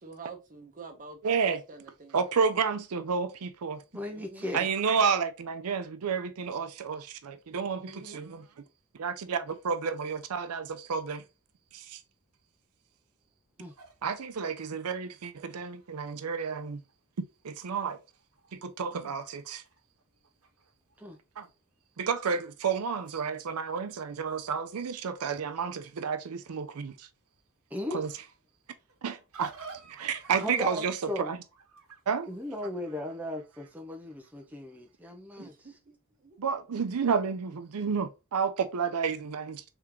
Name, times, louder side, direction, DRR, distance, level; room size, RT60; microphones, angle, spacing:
voice 1, 0.0-1.2 1.5-2.2 4.1-4.5 7.8-8.2 35.4-36.4, right 3 dB, 35° right, 0.9 m, -47 dB
voice 2, 1.2-1.6 2.1-3.8 4.5-8.4 8.9-11.2 11.7-12.0 14.0-16.8 17.4-18.0 18.5-19.6 21.4-21.5 22.0-27.1 27.9-28.1 29.0-31.4 32.1-32.3 36.4-39.6, right 6 dB, 85° right, 0.5 m, -31 dB
voice 3, 3.9-4.7 13.6-13.7 21.0-21.2 27.7-28.0 30.4-31.3 32.3-35.5, left 1 dB, 5° right, 0.5 m, -36 dB
sound 1, 13.7-16.9 17.4-17.5 17.8-18.6 18.8-21.2 21.4-22.0 22.6-32.6, right 4 dB, 70° right, 1.0 m, -52 dB
3.6 x 3.4 x 2.9 m
head